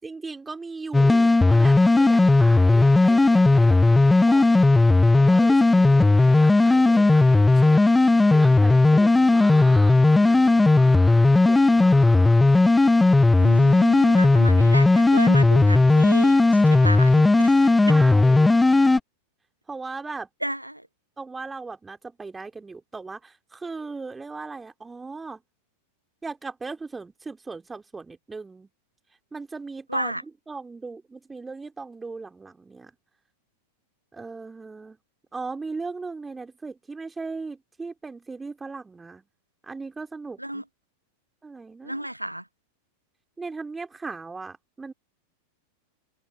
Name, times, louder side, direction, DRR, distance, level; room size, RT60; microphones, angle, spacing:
voice 1, 0.0-4.7 5.2-7.8 8.3-12.4 17.9-18.5 19.7-20.3 21.2-25.4 26.2-28.7 29.3-30.1 30.5-32.9 34.1-35.0 35.3-39.3 39.6-40.6 41.4-42.1 43.4-44.9, right 4 dB, 10° right, 3.9 m, -38 dB
sound 1, 0.9-19.0, left 2 dB, 10° left, 1.1 m, -16 dB
voice 2, 13.4-17.7 20.4-20.8 29.9-30.2 40.4-40.6 41.8-42.4, right 1 dB, 90° right, 1.3 m, -32 dB
figure-of-eight pair, 90°, 0 cm